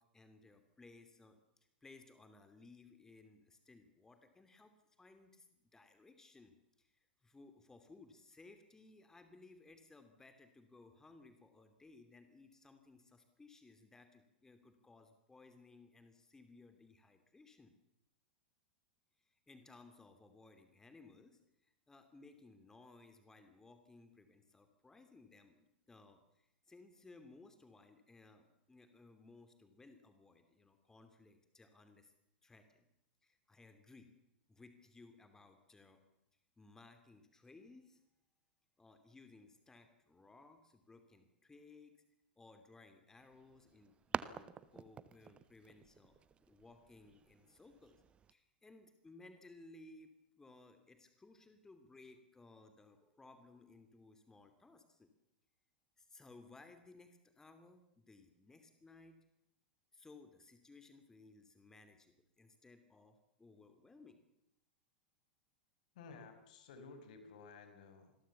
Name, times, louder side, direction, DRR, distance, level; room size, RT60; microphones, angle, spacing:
voice 1, 0.0-17.7 19.2-32.1 32.4-32.9 33.2-34.1 34.5-36.0 36.6-38.0 38.8-41.9 42.4-46.2 46.5-48.0 48.3-50.1 50.4-55.1 56.0-59.2 59.9-64.2, left 3 dB, 10° left, 8 dB, 2.9 m, -61 dB
sound 1, 43.2-48.3, right 7 dB, 20° right, 1.2 m, -48 dB
voice 2, 65.9-68.2, left 4 dB, 55° left, 8 dB, 5.4 m, -55 dB
27.5 x 21.0 x 7.1 m, 0.86 s
figure-of-eight pair, 95°, 5 cm